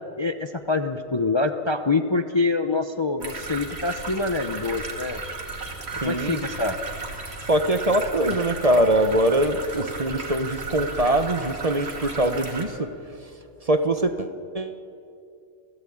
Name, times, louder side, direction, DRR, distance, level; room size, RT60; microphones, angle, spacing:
voice 1, 0.2-5.2 6.0-6.8 8.2-8.3, left 3 dB, 25° left, 7 dB, 0.7 m, -25 dB
sound 1, 3.2-12.7, right 3 dB, 55° right, 2.7 m, -35 dB
voice 2, 6.0-6.4 7.5-12.9 13.6-14.8, right 1 dB, 30° right, 9 dB, 1.1 m, -23 dB
28.0 x 16.0 x 8.7 m, 2.6 s
omnidirectional pair, 1.3 m